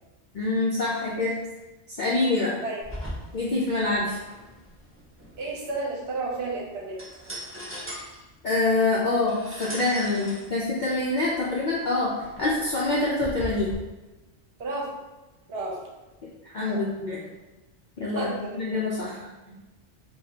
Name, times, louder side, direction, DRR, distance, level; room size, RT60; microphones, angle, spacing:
voice 1, 0.3-1.4 1.9-2.6 3.3-4.2 8.4-12.1 12.4-13.7 16.4-17.2 18.0-19.2 19.4-19.6, left 2 dB, 55° left, -6 dB, 0.6 m, -25 dB
sound 1, 2.8-13.7, equal, 15° right, 0.7 m, -41 dB
voice 2, 5.4-7.0 14.6-14.9 15.5-15.8 16.7-16.8 18.1-18.8, right 3 dB, 65° right, -3 dB, 1.0 m, -32 dB
4.1 x 2.4 x 2.7 m, 1.1 s
omnidirectional pair, 1.2 m